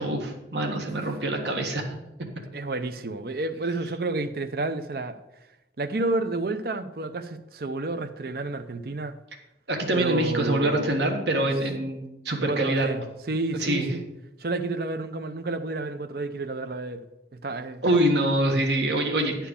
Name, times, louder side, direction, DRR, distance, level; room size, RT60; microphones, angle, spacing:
voice 1, 0.0-1.9 9.7-12.9 13.6-13.9 17.8-19.5, right 1 dB, 75° right, 1.6 m, -25 dB
voice 2, 2.5-5.2 5.8-9.2 9.9-11.0 11.4-11.5 12.5-14.0 14.4-17.0 17.4-17.8, right 2 dB, 55° right, 0.6 m, -30 dB
10.0 x 4.5 x 7.0 m
head